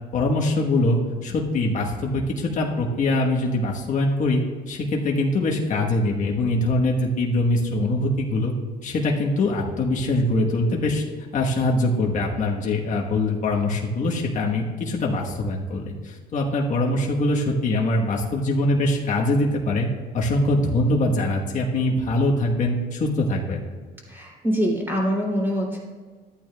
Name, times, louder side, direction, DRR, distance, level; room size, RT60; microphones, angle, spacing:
voice 1, 0.1-8.5 8.8-11.0 11.3-19.9 20.1-23.6, left 2 dB, 50° left, -1 dB, 1.3 m, -23 dB
voice 2, 24.1-25.8, equal, 10° right, -4 dB, 3.0 m, -24 dB
13.0 x 9.0 x 2.4 m, 1.5 s
cardioid pair, 110°, 17 cm